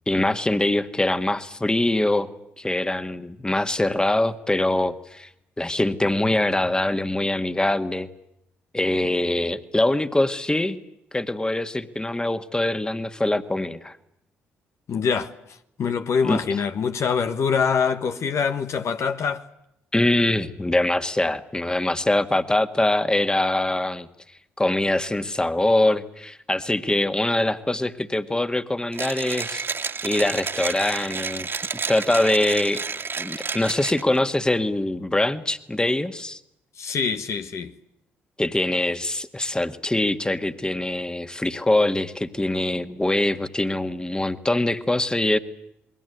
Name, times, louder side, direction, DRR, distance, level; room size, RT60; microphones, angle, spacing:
voice 1, 0.1-2.3 2.6-5.3 5.6-8.1 8.7-10.8 11.1-14.0 16.2-16.4 19.9-24.1 24.6-29.6 30.0-31.5 31.9-32.8 33.2-36.4 38.4-45.4, left 1 dB, 15° left, 1.9 m, -23 dB
voice 2, 14.9-19.4 36.8-37.7, left 6 dB, 60° left, 1.4 m, -24 dB
Mechanisms, 28.9-34.2, right 5 dB, 40° right, 2.2 m, -31 dB
28.5 x 22.0 x 8.2 m
hypercardioid pair, 45°, 6 cm